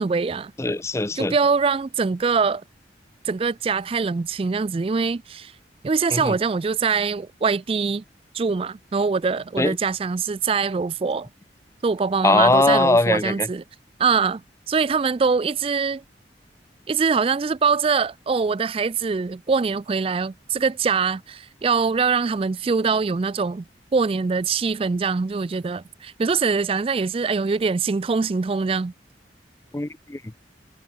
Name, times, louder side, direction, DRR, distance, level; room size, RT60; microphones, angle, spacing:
voice 1, 0.0-0.5 1.2-2.6 3.2-5.5 5.8-8.0 8.3-11.3 11.8-13.6 14.0-14.4 14.7-16.0 16.9-23.6 23.9-28.9, right 5 dB, 30° right, 0.4 m, -23 dB
voice 2, 0.6-1.3 6.1-6.3 9.6-9.8 12.2-13.5 29.7-30.2, left 2 dB, 15° left, 0.5 m, -20 dB
head